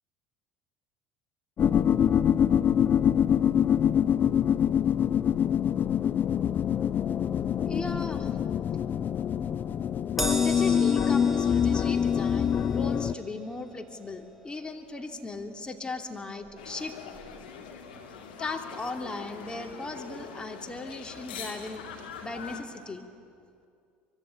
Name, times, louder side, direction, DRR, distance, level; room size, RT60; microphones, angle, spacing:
sound 1, 1.6-13.1, left 8 dB, 40° left, 0.7 m, -25 dB
voice 1, 7.7-8.3 10.4-16.9 18.4-21.9 22.2-23.1, left 3 dB, 20° left, 4 dB, 2.9 m, -37 dB
Crash cymbal, 10.2-16.8 17.1-17.4 18.4-18.5, right 1 dB, ahead, 4.7 m, -40 dB
sound 2, 16.6-22.6, left 6 dB, 75° left, 2.8 m, -43 dB
24.5 x 23.0 x 9.7 m, 2.4 s
hypercardioid pair, 65°, 5 cm